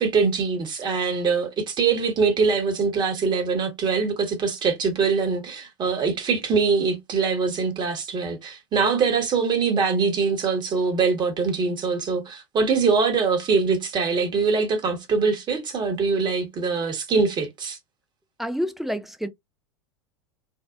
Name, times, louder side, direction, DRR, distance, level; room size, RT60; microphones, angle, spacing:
voice 1, 0.0-17.8, right 5 dB, 30° right, 1.0 m, -23 dB
voice 2, 18.4-19.3, equal, ahead, 0.4 m, -28 dB
2.7 x 2.1 x 2.2 m
hypercardioid pair, 90°, 14 cm